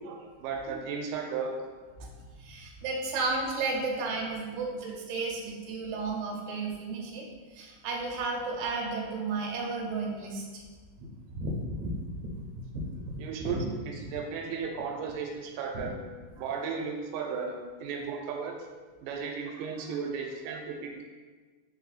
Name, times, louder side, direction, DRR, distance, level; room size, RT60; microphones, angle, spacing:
voice 1, 0.0-1.5 4.5-4.6 13.2-15.9 16.4-18.6 19.0-21.0, right 5 dB, 90° right, 1 dB, 2.2 m, -35 dB
voice 2, 2.4-7.3 7.5-10.6 11.0-12.0 12.3-12.4 13.1-13.6 14.0-14.1 15.7-15.9, right 3 dB, 75° right, -1 dB, 2.0 m, -33 dB
4.9 x 2.7 x 4.0 m, 1.5 s
omnidirectional pair, 3.7 m